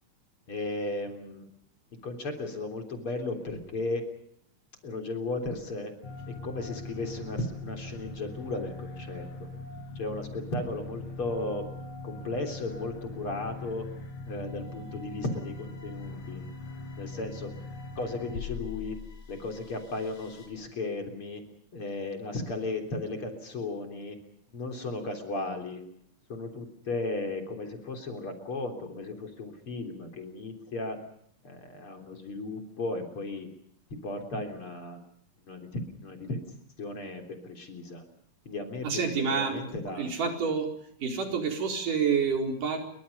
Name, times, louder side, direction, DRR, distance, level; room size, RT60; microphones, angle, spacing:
voice 1, 0.5-1.4 2.0-4.0 4.8-5.9 6.3-9.3 10.0-11.6 12.0-13.9 14.3-16.4 17.0-17.5 18.0-19.0 19.3-21.4 21.7-24.2 24.5-25.8 26.3-31.0 31.4-33.5 34.0-35.0 35.4-36.4 36.8-38.0 38.5-40.1, left 2 dB, 40° left, 4 dB, 4.2 m, -35 dB
sound 1, 6.0-20.5, left 3 dB, 65° left, 6.6 m, -41 dB
voice 2, 38.8-39.6 40.0-40.7 41.0-42.8, right 6 dB, 85° right, 3 dB, 5.9 m, -28 dB
28.5 x 24.0 x 5.4 m, 0.68 s
omnidirectional pair, 3.6 m